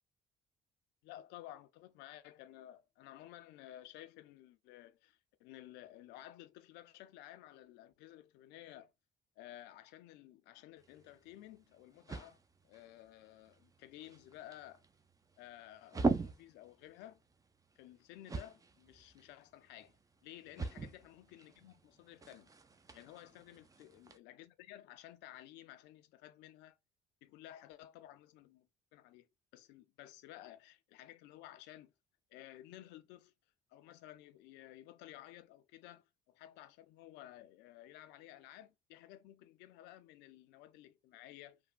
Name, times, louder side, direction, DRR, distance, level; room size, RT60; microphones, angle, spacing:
voice 1, 1.0-8.9 9.4-14.8 15.4-17.2 17.8-20.0 20.2-22.5 22.9-26.8 27.2-29.3 29.5-31.9 32.3-33.3 33.7-41.6, left 14 dB, 85° left, 0.4 m, -54 dB
sound 1, 10.8-24.2, right 3 dB, 20° right, 0.4 m, -43 dB
3.3 x 2.1 x 2.2 m
supercardioid pair, 75°, 17 cm